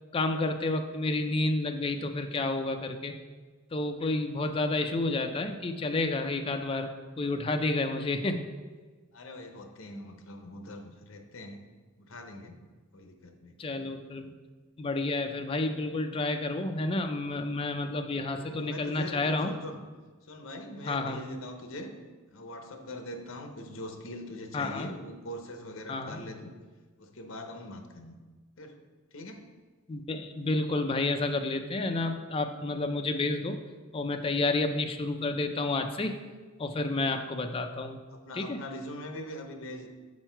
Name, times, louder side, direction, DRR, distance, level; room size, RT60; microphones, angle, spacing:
voice 1, 0.1-3.1 3.7-6.9 7.2-8.4 13.6-14.3 14.8-19.5 20.8-21.2 24.5-24.9 25.9-26.2 29.9-33.6 33.9-36.1 36.6-38.0 38.3-38.6, left 2 dB, 25° left, 5 dB, 0.4 m, -30 dB
voice 2, 9.1-11.6 12.0-12.6 12.9-13.6 18.3-19.8 20.3-21.9 22.3-26.6 27.0-28.2 28.6-28.8 29.1-29.5 38.1-39.9, left 1 dB, 70° left, 5 dB, 0.8 m, -42 dB
6.2 x 4.5 x 4.4 m, 1.4 s
head